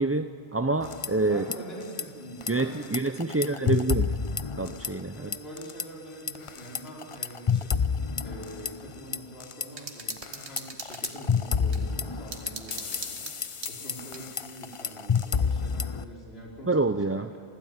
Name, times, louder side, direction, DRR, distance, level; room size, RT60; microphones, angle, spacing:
voice 1, 0.0-1.4 2.5-4.1 4.6-5.3 16.7-17.3, right 3 dB, 20° right, 8 dB, 0.5 m, -27 dB
sound 1, 0.8-1.6 1.8-2.0 2.4-5.1 5.3-5.8 6.3-9.7 10.1-16.0, left 6 dB, 35° left, 0.6 m, -29 dB
voice 2, 1.3-3.8 5.1-8.0 8.2-17.4, right 1 dB, 70° left, -3 dB, 5.0 m, -44 dB
sound 2, 9.7-11.8 12.3-14.3, right 4 dB, 90° right, 1.9 m, -41 dB
27.5 x 17.0 x 9.6 m, 2.4 s
omnidirectional pair, 1.1 m